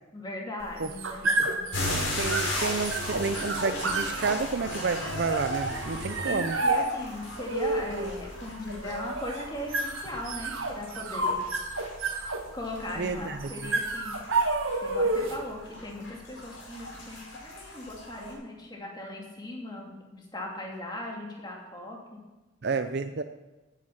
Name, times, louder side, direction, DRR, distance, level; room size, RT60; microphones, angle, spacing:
voice 1, 0.1-1.9 5.9-11.5 12.5-14.2 14.8-22.2, left 1 dB, 20° left, -1 dB, 2.5 m, -39 dB
sound 1, 0.6-15.5, right 2 dB, 80° right, 1.7 m, -31 dB
sound 2, 1.7-18.3, left 1 dB, 70° left, 5.1 m, -37 dB
voice 2, 2.2-6.6 13.0-13.5 22.6-23.2, right 4 dB, 55° right, 9 dB, 0.5 m, -30 dB
15.0 x 9.2 x 5.8 m, 1.1 s
head